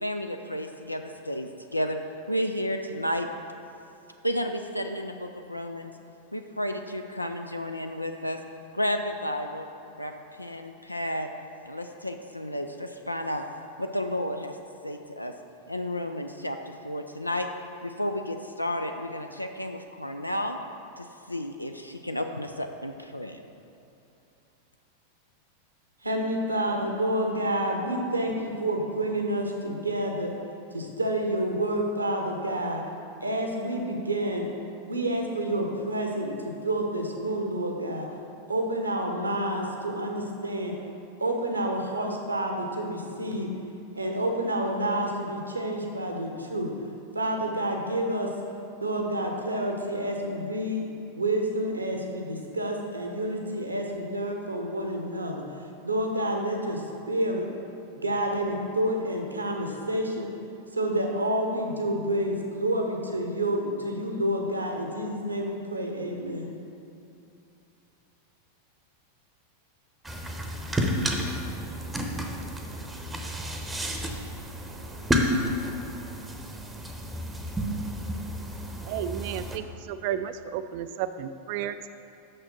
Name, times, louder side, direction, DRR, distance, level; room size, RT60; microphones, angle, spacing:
voice 1, 0.0-2.0 2.3-3.3 4.2-5.9 6.3-8.4 8.7-9.7 10.0-11.3 11.6-13.5 13.8-14.6 14.8-15.3 15.7-17.5 17.8-20.6 21.0-23.4, equal, 85° left, 5 dB, 0.4 m, -32 dB
voice 2, 26.0-30.3 30.7-32.8 33.2-34.5 34.9-38.1 38.5-40.7 41.2-43.5 43.9-46.7 47.1-48.3 48.8-50.9 51.1-55.4 55.8-57.5 57.9-60.3 60.7-66.5, right 1 dB, 80° right, 2 dB, 1.0 m, -29 dB
sound 1, 70.0-79.6, equal, 10° right, 0.8 m, -31 dB
voice 3, 78.9-81.9, right 10 dB, 45° right, 11 dB, 0.4 m, -32 dB
6.5 x 6.3 x 5.9 m, 2.7 s
figure-of-eight pair, 90°, 0 cm